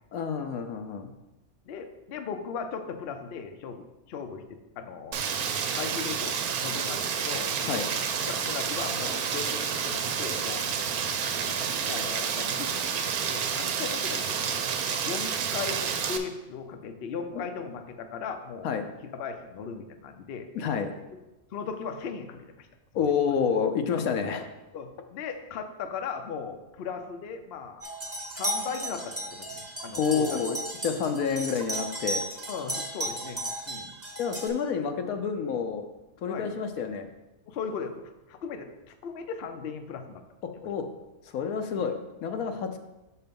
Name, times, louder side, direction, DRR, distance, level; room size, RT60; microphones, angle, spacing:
voice 1, 0.1-1.1 7.6-7.9 17.3-17.4 18.6-18.8 20.5-20.9 22.9-24.5 30.0-30.6 30.8-32.2 34.2-35.9 36.2-37.1 40.4-40.8 41.3-42.8, left 6 dB, 75° left, 6 dB, 1.1 m, -29 dB
voice 2, 1.7-5.2 5.7-7.9 8.3-10.7 11.4-12.7 13.2-14.7 15.0-18.7 19.0-20.5 21.1-21.2 21.5-22.7 23.3-23.4 24.0-24.1 24.7-27.8 28.3-30.4 30.9-31.0 32.5-33.4 33.7-33.9 36.3-36.5 37.5-38.0 38.3-40.2 40.5-40.7 41.7-41.8 42.5-42.6, left 6 dB, 55° left, 7 dB, 0.7 m, -38 dB
Rain, 5.1-16.2, right 7 dB, 90° right, 1.1 m, -29 dB
sound 1, 27.8-34.5, right 1 dB, 10° right, 1.0 m, -34 dB
6.5 x 4.4 x 5.2 m, 1.0 s
omnidirectional pair, 1.5 m